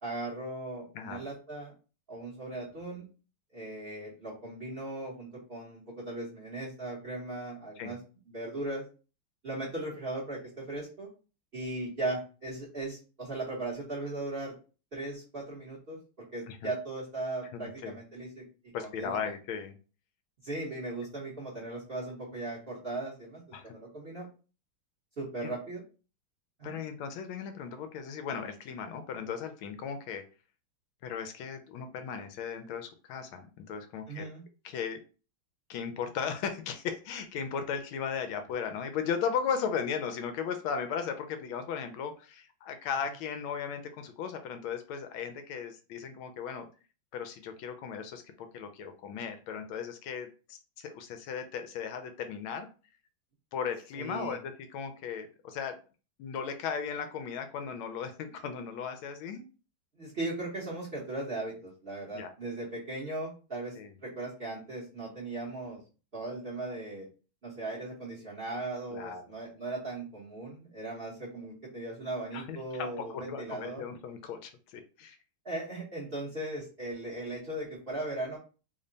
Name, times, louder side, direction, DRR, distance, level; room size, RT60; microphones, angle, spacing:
voice 1, 0.0-1.7 2.1-3.1 3.5-8.0 8.3-8.8 9.4-11.1 11.5-14.5 14.9-18.4 18.8-19.3 20.4-24.3 25.2-25.8 26.6-26.8 34.1-34.4 53.9-54.4 59.9-65.8 66.1-67.1 67.4-73.9 75.4-78.4, right 2 dB, 40° right, -5 dB, 0.9 m, -38 dB
voice 2, 17.5-18.0 18.7-19.7 23.5-23.7 25.4-25.5 26.6-30.2 31.0-34.2 34.6-35.0 35.7-46.7 47.1-52.7 53.5-55.8 56.2-59.4 62.1-62.3 63.7-63.9 68.9-69.2 72.3-75.2, left 7 dB, 80° left, 7 dB, 1.3 m, -36 dB
3.5 x 2.1 x 3.8 m, 0.35 s
omnidirectional pair, 2.3 m